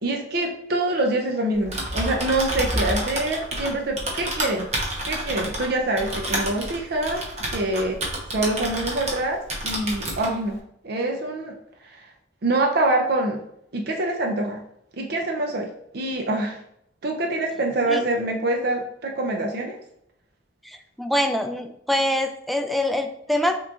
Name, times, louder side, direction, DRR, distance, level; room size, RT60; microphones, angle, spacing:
voice 1, 0.0-4.7 5.0-7.2 7.5-8.0 8.3-11.5 11.8-11.9 12.4-13.4 13.7-14.6 15.0-15.7 15.9-16.6 17.0-19.8, right 2 dB, 60° right, 2 dB, 0.6 m, -25 dB
Typing, 1.5-9.2 9.5-10.3, right 1 dB, 40° right, 1.0 m, -29 dB
voice 2, 20.6-23.6, left 1 dB, ahead, 5 dB, 0.3 m, -25 dB
5.9 x 3.1 x 2.4 m, 0.74 s
head